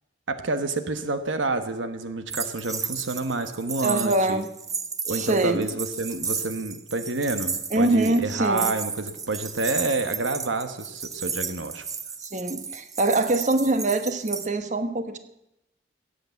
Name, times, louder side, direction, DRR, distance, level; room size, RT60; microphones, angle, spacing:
voice 1, 0.3-4.4 5.0-11.8, right 3 dB, 80° right, 9 dB, 1.2 m, -28 dB
sound 1, 2.3-14.5, right 5 dB, 20° right, 0.8 m, -33 dB
voice 2, 3.8-4.5 5.1-5.7 7.7-8.7 12.2-15.2, right 2 dB, 40° right, 9 dB, 1.2 m, -24 dB
16.5 x 8.2 x 8.2 m, 0.86 s
head